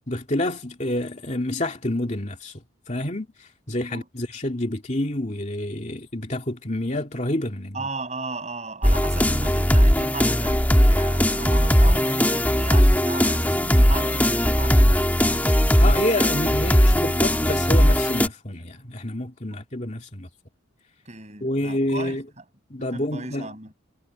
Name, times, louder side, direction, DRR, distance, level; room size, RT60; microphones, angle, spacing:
voice 1, 0.1-2.6 2.9-7.9 15.8-20.3 21.4-22.2 22.7-23.5, left 1 dB, 35° left, 2.6 m, -28 dB
voice 2, 7.7-15.2 19.5-19.6 21.1-22.4 22.8-23.7, right 3 dB, 35° right, 7.6 m, -35 dB
sound 1, 8.8-18.3, equal, 10° left, 2.3 m, -19 dB
head